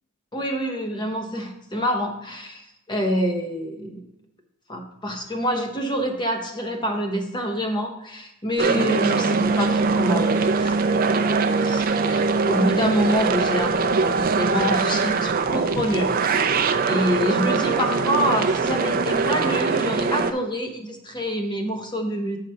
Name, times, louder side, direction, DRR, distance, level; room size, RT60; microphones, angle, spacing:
voice 1, 0.3-4.0 4.7-22.4, equal, 20° left, 4 dB, 0.9 m, -27 dB
sound 1, 8.6-20.3, right 4 dB, 40° right, 0.4 m, -22 dB
7.5 x 4.0 x 5.6 m, 0.82 s
head